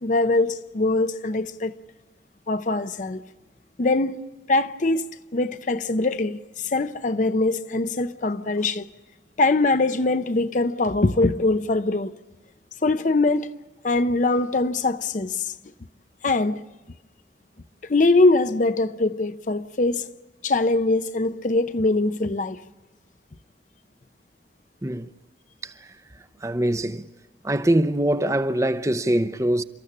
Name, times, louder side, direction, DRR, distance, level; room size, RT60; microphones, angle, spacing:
voice 1, 0.0-1.7 2.5-3.2 3.8-4.2 4.5-5.1 5.3-8.9 9.4-12.1 12.8-13.5 13.8-15.5 16.2-16.6 17.8-20.1 20.4-22.6, left 2 dB, 45° left, 0.6 m, -22 dB
voice 2, 26.4-27.0 27.4-29.6, right 1 dB, 15° right, 0.7 m, -23 dB
30.0 x 14.0 x 8.8 m
head